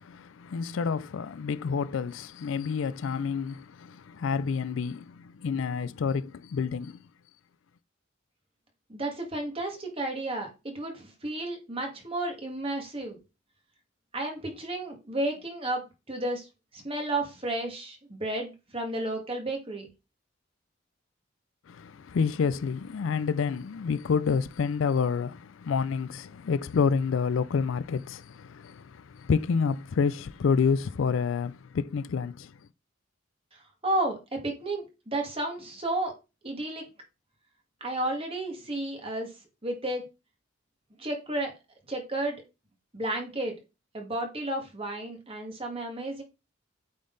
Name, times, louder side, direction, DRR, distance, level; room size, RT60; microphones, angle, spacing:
voice 1, 0.0-7.0 21.7-32.5, left 5 dB, 75° left, 0.4 m, -28 dB
voice 2, 8.9-13.2 14.1-16.5 16.7-19.9 33.5-36.1 36.4-36.8 37.8-39.3 39.6-40.1 41.0-41.5 41.9-42.4 42.9-43.5 43.9-46.2, right 1 dB, 30° right, 1.9 m, -32 dB
8.4 x 3.9 x 3.9 m
head